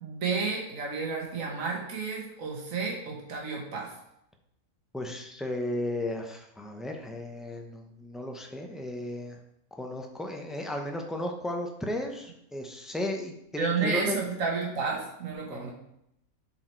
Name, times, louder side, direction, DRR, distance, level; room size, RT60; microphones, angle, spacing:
voice 1, 0.0-3.9 13.6-15.7, right 5 dB, 65° right, -1 dB, 1.8 m, -31 dB
voice 2, 4.9-9.4 9.7-14.2 15.5-15.7, left 1 dB, ahead, 3 dB, 0.4 m, -34 dB
7.6 x 5.0 x 4.5 m, 0.77 s
omnidirectional pair, 1.6 m